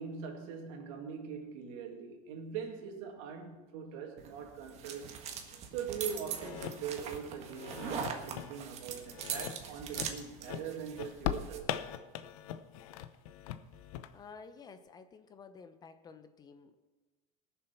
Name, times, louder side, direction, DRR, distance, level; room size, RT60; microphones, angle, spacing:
voice 1, 0.0-5.1 5.7-11.7, right 6 dB, 70° right, 2.3 m, -42 dB
sound 1, 4.2-11.6, right 7 dB, 40° right, 1.5 m, -42 dB
sound 2, 6.3-7.2 7.5-8.6 9.0-9.6 10.0-10.2 10.5-14.1, left 12 dB, 80° left, 0.8 m, -40 dB
voice 2, 14.1-16.8, left 5 dB, 20° left, 0.7 m, -52 dB
19.5 x 7.0 x 5.9 m
supercardioid pair, 150°, 18 cm